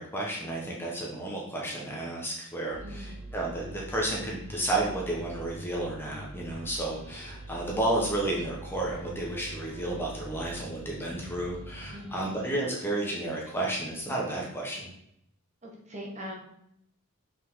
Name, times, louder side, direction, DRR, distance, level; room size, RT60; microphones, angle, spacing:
voice 1, 0.0-14.9, right 1 dB, 10° left, -3 dB, 1.1 m, -32 dB
sound 1, 2.7-12.5, right 1 dB, 70° right, 1.2 m, -43 dB
voice 2, 2.8-3.2 11.9-12.4 15.6-16.3, equal, 30° right, -2 dB, 1.5 m, -41 dB
6.1 x 5.2 x 3.7 m, 0.75 s
head